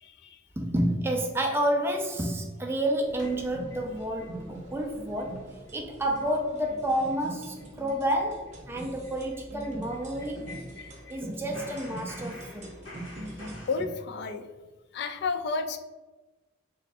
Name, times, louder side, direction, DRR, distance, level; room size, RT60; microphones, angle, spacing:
voice 1, 0.0-0.4 13.7-14.4 14.9-15.8, left 4 dB, 60° left, 8 dB, 0.3 m, -31 dB
voice 2, 0.6-10.6 11.1-12.7 13.5-13.6, right 1 dB, 10° right, 1 dB, 0.3 m, -30 dB
Trash Can Rhythm (for looping), 3.0-13.6, right 1 dB, 40° right, 0.8 m, -43 dB
sound 1, 3.2-4.3 4.7-4.8 5.2-5.4 5.7-5.8 6.1-6.3 6.6-6.8 7.1-7.2 7.6-11.2 11.5-13.8, left 1 dB, 85° left, 0.9 m, -48 dB
3.3 x 2.2 x 4.1 m, 1.2 s
head